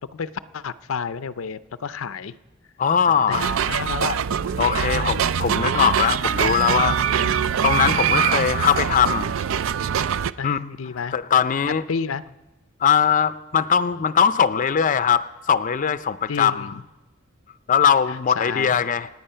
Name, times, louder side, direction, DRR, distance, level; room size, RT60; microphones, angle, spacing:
voice 1, 0.1-2.3 3.1-4.2 5.2-5.3 7.2-7.6 10.4-11.1 11.9-12.2 16.3-16.8 18.4-18.7, left 6 dB, 85° left, 14 dB, 0.5 m, -31 dB
voice 2, 2.8-3.5 4.6-7.0 7.6-9.3 10.4-10.6 11.1-11.8 12.8-16.7 17.7-19.1, left 7 dB, 40° left, 13 dB, 0.5 m, -20 dB
sound 1, 3.3-10.3, right 8 dB, 70° right, 0.4 m, -23 dB
27.0 x 9.3 x 5.6 m, 1.1 s
head